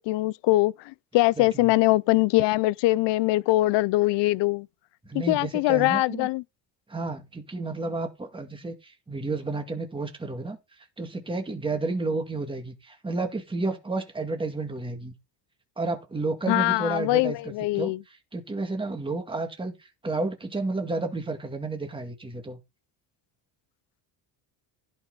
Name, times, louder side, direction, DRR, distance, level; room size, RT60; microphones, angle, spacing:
voice 1, 0.0-4.7 5.3-6.4 16.5-18.0, left 19 dB, 70° left, 0.6 m, -22 dB
voice 2, 1.4-1.7 5.0-6.3 6.9-10.6 11.0-15.1 15.8-19.7 20.0-22.6, right 3 dB, 10° right, 2.1 m, -31 dB
15.0 x 5.5 x 4.0 m
cardioid pair, 135°, 44 cm